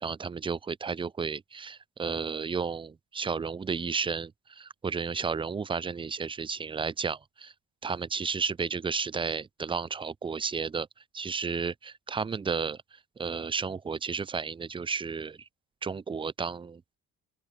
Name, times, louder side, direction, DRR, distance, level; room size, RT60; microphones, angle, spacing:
voice 1, 0.0-7.5 7.8-10.9 11.1-15.5 15.8-16.9, right 5 dB, 15° right, 0.3 m, -33 dB
open air
hypercardioid pair, 45°, 49 cm